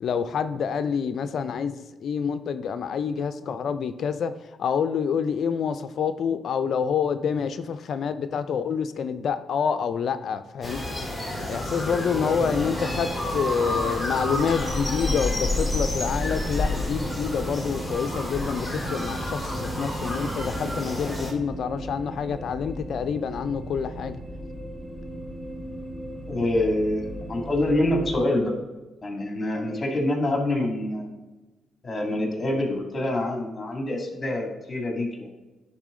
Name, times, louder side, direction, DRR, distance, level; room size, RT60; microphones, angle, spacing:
voice 1, 0.0-10.8 11.5-24.2 26.3-26.4, left 6 dB, 65° left, 11 dB, 0.4 m, -27 dB
sound 1, 10.6-21.3, left 1 dB, 10° left, 2.2 m, -29 dB
sound 2, 12.2-28.2, equal, 20° right, 1.4 m, -37 dB
voice 2, 26.3-28.5 29.0-31.1 31.8-35.3, left 1 dB, 35° left, 2 dB, 2.2 m, -26 dB
10.0 x 3.7 x 3.7 m, 1.1 s
supercardioid pair, 60°, 0 cm